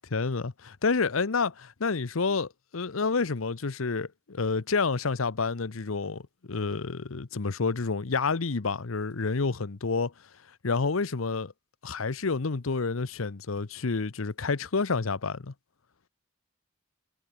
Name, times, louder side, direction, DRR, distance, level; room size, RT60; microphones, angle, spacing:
voice 1, 0.1-10.1 10.6-11.5 11.8-15.5, left 4 dB, 90° left, 0.9 m, -29 dB
head